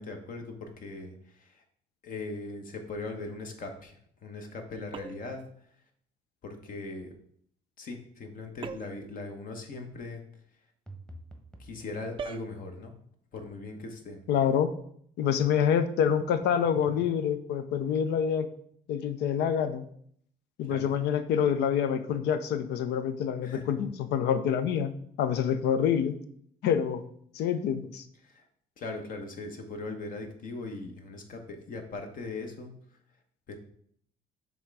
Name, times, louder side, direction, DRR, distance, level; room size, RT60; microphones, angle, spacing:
voice 1, 0.0-1.6 2.0-5.4 6.4-7.1 7.8-10.2 11.6-12.9 13.3-14.2 20.7-20.9 23.4-23.7 28.2-28.4 28.8-32.7 33.5-33.6, left 3 dB, 55° left, 5 dB, 1.2 m, -39 dB
sound 1, 4.9-5.4 8.6-9.1 12.2-12.5, right 6 dB, 30° right, 0.4 m, -40 dB
sound 2, 10.9-11.8 16.2-17.1, right 1 dB, 5° left, 1.0 m, -47 dB
voice 2, 14.3-14.7 15.2-18.5 18.9-19.9 20.6-24.9 25.2-26.2 26.6-27.0 27.3-28.0, left 8 dB, 80° left, 11 dB, 0.6 m, -27 dB
6.2 x 3.6 x 4.7 m, 0.65 s
cardioid pair, 110°, 17 cm